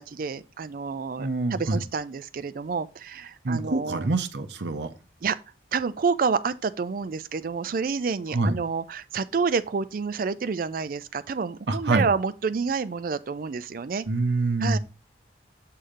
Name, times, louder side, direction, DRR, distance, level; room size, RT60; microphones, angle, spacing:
voice 1, 0.0-4.1 5.2-5.4 5.7-14.1 14.6-14.8, right 5 dB, 50° right, 0.4 m, -29 dB
voice 2, 1.2-1.8 3.4-4.9 8.3-8.6 11.7-12.1 14.1-14.8, right 2 dB, 80° right, 0.7 m, -25 dB
7.8 x 2.8 x 4.9 m
head